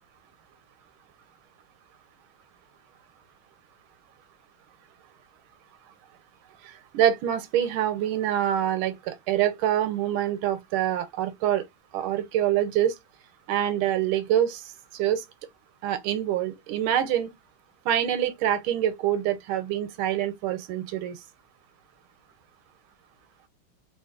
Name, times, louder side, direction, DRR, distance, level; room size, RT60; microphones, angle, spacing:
voice 1, 6.9-11.6 11.9-12.9 13.5-14.6 14.9-15.2 15.8-17.3 17.9-21.1, right 11 dB, 85° right, 1.5 m, -25 dB
3.2 x 2.9 x 2.4 m
omnidirectional pair, 2.3 m